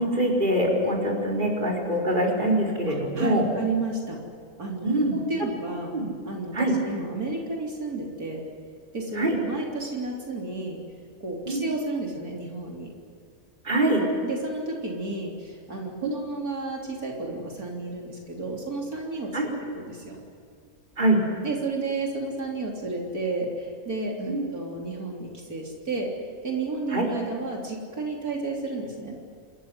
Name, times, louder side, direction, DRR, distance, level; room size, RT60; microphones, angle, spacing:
voice 1, 0.0-3.5 4.8-5.1 5.9-6.1 6.5-6.7 9.1-9.4 11.5-11.6 13.6-14.0 16.0-16.2 19.3-19.5 21.0-21.2 24.3-24.5 26.9-27.1, right 1 dB, 30° right, -1 dB, 4.8 m, -24 dB
voice 2, 3.2-4.2 4.6-5.9 6.3-8.4 8.9-10.8 11.2-12.9 14.2-19.3 19.7-20.2 21.4-26.1 26.4-29.2, right 3 dB, 80° right, 0 dB, 4.0 m, -32 dB
28.0 x 15.0 x 9.7 m, 2.3 s
omnidirectional pair, 1.5 m